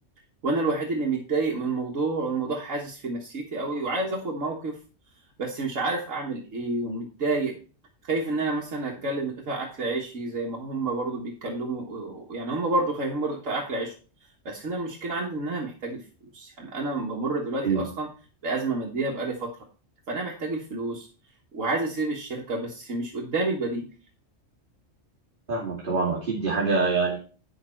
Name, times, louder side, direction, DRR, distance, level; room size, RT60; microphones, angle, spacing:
voice 1, 0.4-4.8 5.4-7.6 8.0-13.9 14.5-16.0 16.3-18.1 18.4-19.5 20.1-21.1 21.5-23.9, right 3 dB, 80° right, -1 dB, 1.8 m, -29 dB
voice 2, 25.5-27.2, right 4 dB, 40° right, -6 dB, 2.6 m, -25 dB
9.3 x 6.7 x 4.4 m, 0.35 s
omnidirectional pair, 1.3 m